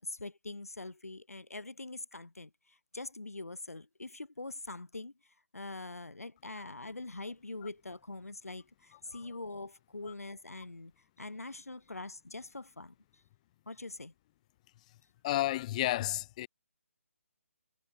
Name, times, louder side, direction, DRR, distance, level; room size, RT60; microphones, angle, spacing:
voice 1, 0.0-5.1 5.5-12.9 13.7-14.1, left 2 dB, 90° left, 6.9 m, -43 dB
voice 2, 15.2-16.5, left 15 dB, 30° left, 1.9 m, -32 dB
figure-of-eight pair, 150°, 8 cm